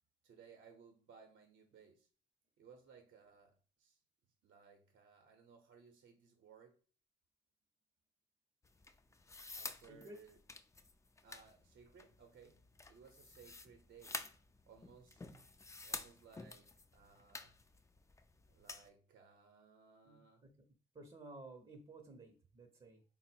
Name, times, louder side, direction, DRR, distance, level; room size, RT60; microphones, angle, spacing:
voice 1, 0.2-2.1 2.6-4.0 4.4-6.8 9.6-10.4 11.2-12.6 12.9-14.2 14.7-15.2 15.8-17.6 18.5-20.5, right 6 dB, 65° right, 3 dB, 0.7 m, -62 dB
sound 1, 8.6-18.9, left 3 dB, 15° left, 0.3 m, -50 dB
voice 2, 9.8-10.2 20.0-20.5 20.9-23.0, right 2 dB, 25° right, 3 dB, 0.6 m, -55 dB
3.7 x 2.0 x 4.3 m, 0.39 s
cardioid pair, 90°, 20 cm